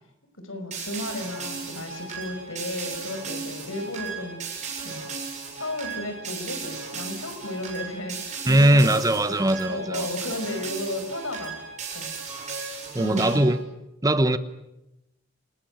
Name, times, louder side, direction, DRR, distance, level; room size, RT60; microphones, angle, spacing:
voice 1, 0.3-5.1 5.5-11.6 11.9-12.2 13.0-13.4, left 1 dB, 85° left, 5.7 m, -34 dB
sound 1, 0.7-13.6, right 5 dB, 35° right, 7.4 m, -36 dB
voice 2, 8.5-10.1 12.9-13.6 14.0-14.4, right 1 dB, 15° right, 1.0 m, -20 dB
27.5 x 20.0 x 9.2 m
head